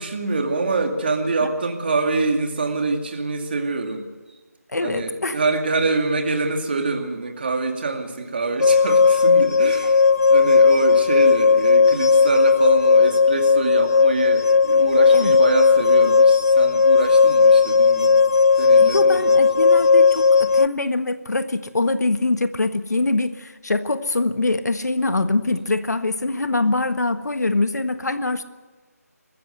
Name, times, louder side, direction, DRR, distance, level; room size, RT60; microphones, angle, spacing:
voice 1, 0.0-4.1 4.8-18.2 18.6-19.5, right 3 dB, 35° right, 4 dB, 2.3 m, -25 dB
voice 2, 4.7-5.4 9.6-9.7 15.1-15.3 18.8-28.4, left 2 dB, 80° left, 10 dB, 1.6 m, -23 dB
sound 1, 8.6-20.7, left 5 dB, 65° left, 0.6 m, -15 dB
23.0 x 14.0 x 7.9 m, 1.3 s
figure-of-eight pair, 170°, 9 cm